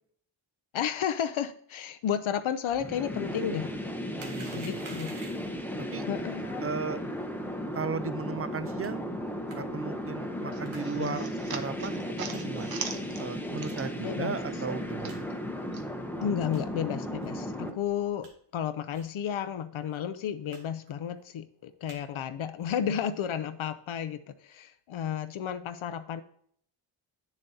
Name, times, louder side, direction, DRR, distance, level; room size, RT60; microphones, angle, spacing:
voice 1, 0.7-3.7 4.5-5.2 6.1-6.7 10.9-11.3 14.0-14.4 16.2-26.2, left 9 dB, 80° left, 10 dB, 0.6 m, -32 dB
sound 1, 2.7-17.7, equal, 5° left, 0.7 m, -35 dB
voice 2, 4.2-4.8 5.9-6.1 6.6-7.0 7.7-9.0 9.5-12.0 12.3-12.8 13.2-15.3, right 5 dB, 30° right, 13 dB, 0.4 m, -36 dB
sound 2, 4.2-5.6 8.8-8.9 9.5-9.6 10.6-10.9 11.4-11.5 12.3-12.4 12.9-13.1 13.6-13.7 14.3-14.4 14.7-14.8 15.0-15.2 15.7-15.9 16.4-16.7 17.2-17.3 17.8-18.3 18.9-19.1 19.4-19.5 19.8-20.0 20.5-20.6 20.9-21.2 21.6-22.0 22.6-22.8, right 3 dB, 75° right, 1.8 m, -49 dB
sound 3, 10.5-14.2 14.4-15.8, right 5 dB, 50° right, 0.8 m, -41 dB
9.1 x 7.2 x 2.7 m, 0.62 s
wide cardioid pair, 140°, 48 cm